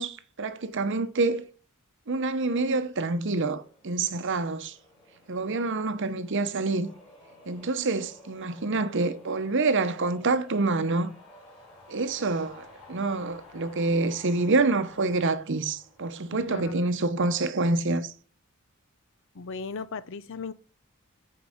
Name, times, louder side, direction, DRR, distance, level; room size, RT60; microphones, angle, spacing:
voice 1, 0.0-1.4 2.1-4.8 5.3-6.9 7.5-11.1 11.9-18.1, right 3 dB, 60° right, 0.8 m, -27 dB
sound 1, 2.8-17.0, left 2 dB, 25° left, 5.0 m, -54 dB
voice 2, 16.3-17.1 19.3-20.5, left 4 dB, 65° left, 0.6 m, -37 dB
8.3 x 4.8 x 5.0 m
head